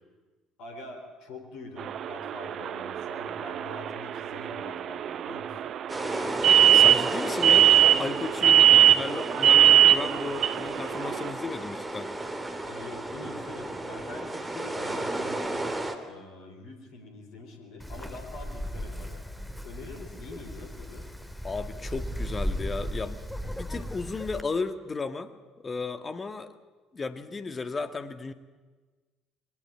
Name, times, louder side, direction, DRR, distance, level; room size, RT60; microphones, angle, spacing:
voice 1, 0.6-5.7 8.4-9.0 12.6-15.7 16.1-19.2 19.6-21.1, left 2 dB, 55° left, 5 dB, 3.9 m, -44 dB
sound 1, 1.8-11.3, right 10 dB, 45° right, 0.7 m, -22 dB
sound 2, 5.9-16.0, right 2 dB, 15° right, 2.7 m, -33 dB
voice 2, 6.7-12.1 21.4-23.2 23.6-25.3 25.6-26.5 26.9-28.3, left 4 dB, 25° left, 9 dB, 1.7 m, -34 dB
Wind, 17.8-24.4, equal, 5° left, 2.0 m, -36 dB
22.0 x 19.0 x 8.7 m, 1.3 s
figure-of-eight pair, 55°, 0 cm